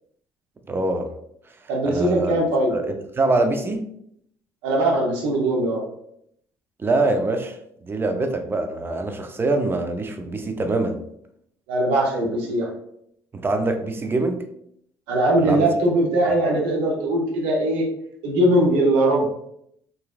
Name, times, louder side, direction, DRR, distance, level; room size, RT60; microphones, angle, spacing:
voice 1, 0.7-1.1 1.8-2.4 2.7-3.8 6.8-7.6 7.8-11.0 13.3-14.4 15.4-15.7 16.3-16.4, right 2 dB, 25° right, 6 dB, 0.5 m, -24 dB
voice 2, 1.7-2.7 4.6-5.8 11.7-12.7 15.1-17.9 18.2-19.2, right 1 dB, 85° right, 0 dB, 0.7 m, -20 dB
2.8 x 2.5 x 2.3 m, 0.72 s
supercardioid pair, 75°, 9 cm